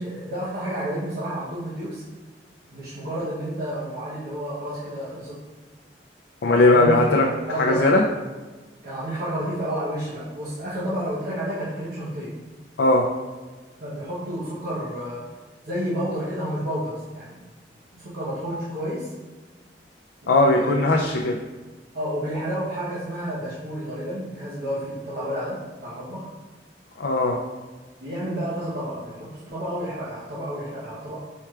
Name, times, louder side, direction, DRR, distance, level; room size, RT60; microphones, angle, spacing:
voice 1, 0.0-2.0 2.7-5.4 6.4-7.0 7.2-8.0 8.8-12.4 13.8-15.2 15.6-17.4 17.9-19.1 20.2-20.7 21.9-26.3 28.0-31.2, equal, 60° right, -9 dB, 0.9 m, -30 dB
voice 2, 6.4-7.3 7.6-8.0 12.8-13.1 20.3-21.4 27.0-27.4, left 2 dB, 70° left, -1 dB, 0.4 m, -18 dB
4.6 x 4.4 x 2.4 m, 1.3 s
head